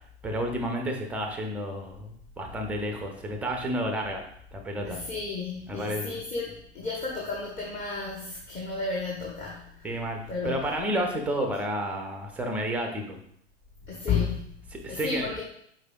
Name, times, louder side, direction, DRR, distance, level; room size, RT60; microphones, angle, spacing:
voice 1, 0.2-4.2 4.5-5.0 5.7-6.2 9.8-13.2 14.8-15.3, equal, 5° right, 3 dB, 0.4 m, -31 dB
voice 2, 4.8-9.9 10.3-10.7 13.9-14.5 14.9-15.4, left 4 dB, 20° left, -3 dB, 0.8 m, -32 dB
4.8 x 4.1 x 2.2 m, 0.69 s
figure-of-eight pair, 95°, 35 cm